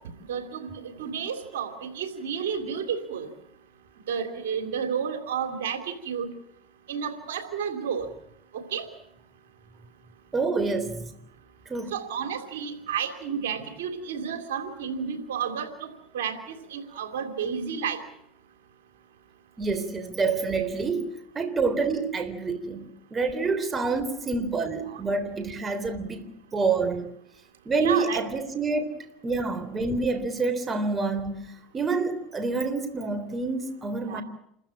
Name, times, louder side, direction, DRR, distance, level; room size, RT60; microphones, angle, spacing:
voice 1, 0.3-0.7 1.0-3.3 4.1-5.8 6.0-6.3 6.9-8.1 8.5-8.9 11.9-15.9 16.1-16.4 16.7-18.0 24.9-25.0 27.8-28.2 34.1-34.2, right 7 dB, 85° right, 3.2 m, -31 dB
voice 2, 10.3-11.1 11.7-11.9 19.6-27.1 27.7-29.0 29.2-31.5 31.7-34.2, right 4 dB, 25° right, 3.5 m, -27 dB
28.5 x 14.5 x 8.8 m
supercardioid pair, 90°, 0 cm